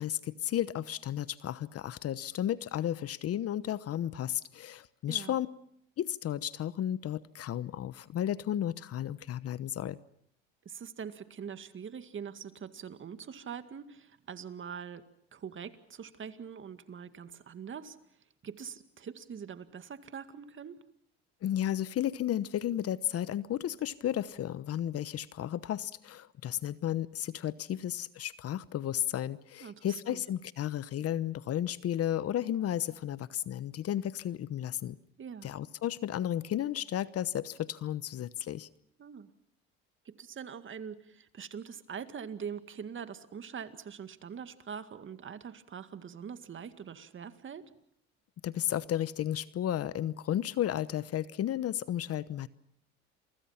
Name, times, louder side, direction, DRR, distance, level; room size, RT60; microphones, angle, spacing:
voice 1, 0.0-5.5 6.0-10.0 21.4-35.0 35.4-38.7 48.4-52.5, left 11 dB, 50° left, 17 dB, 1.0 m, -33 dB
voice 2, 10.7-15.0 15.3-18.0 18.4-20.8 29.6-30.2 35.2-35.5 39.0-39.3 40.0-47.6, right 7 dB, 40° right, 10 dB, 2.1 m, -43 dB
29.5 x 24.0 x 5.8 m, 0.69 s
supercardioid pair, 80°, 31 cm